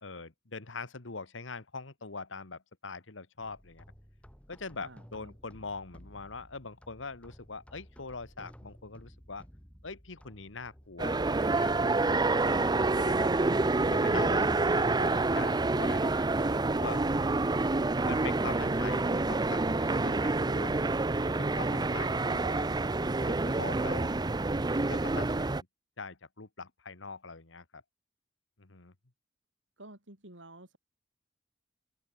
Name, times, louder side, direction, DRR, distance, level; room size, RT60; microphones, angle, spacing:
voice 1, 0.0-3.8 4.5-9.5 9.8-11.7 12.4-13.3 13.9-16.3 16.8-17.0 18.0-20.8 21.2-22.7 23.2-24.2 24.9-25.7 26.0-27.8 28.6-28.9, left 4 dB, 80° left, 1.7 m, -43 dB
sound 1, 3.4-20.6, equal, 5° left, 3.0 m, -55 dB
voice 2, 4.8-5.4 29.8-30.8, right 2 dB, 70° right, 6.6 m, -51 dB
sound 2, 11.0-25.6, right 3 dB, 20° right, 0.6 m, -28 dB
open air
head